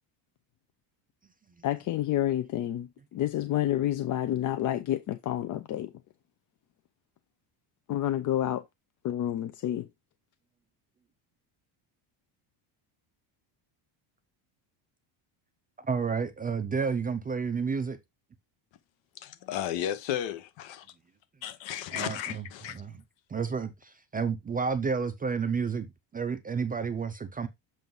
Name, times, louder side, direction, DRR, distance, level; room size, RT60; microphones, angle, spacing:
voice 1, 1.6-5.9 7.9-8.6 9.0-9.9, left 12 dB, 40° left, 0.5 m, -29 dB
voice 2, 15.8-18.0 21.9-22.4 22.7-23.0 23.3-25.9 26.1-27.5, right 5 dB, 20° right, 0.5 m, -30 dB
voice 3, 19.1-20.9 21.4-22.8, left 11 dB, 60° left, 1.0 m, -34 dB
7.6 x 2.6 x 5.4 m
cardioid pair, 140°, 50 cm